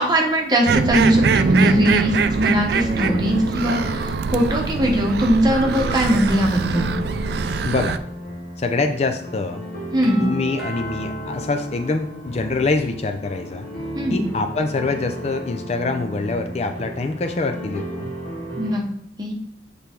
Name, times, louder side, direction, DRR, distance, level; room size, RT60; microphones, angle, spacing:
voice 1, 0.0-6.9 9.9-10.2 13.9-14.2 18.6-18.9 19.2-19.3, equal, 25° right, 1 dB, 1.0 m, -20 dB
sound 1, 0.6-8.0, right 5 dB, 60° right, 0.3 m, -23 dB
sound 2, 2.8-18.7, right 1 dB, 55° left, 2.1 m, -34 dB
voice 2, 7.6-8.0 8.6-9.6 10.2-13.7 14.1-18.1, left 3 dB, 35° left, 7 dB, 0.4 m, -25 dB
Doorbell, 10.0-12.8, equal, ahead, 1.5 m, -38 dB
7.0 x 3.4 x 4.4 m, 0.75 s
head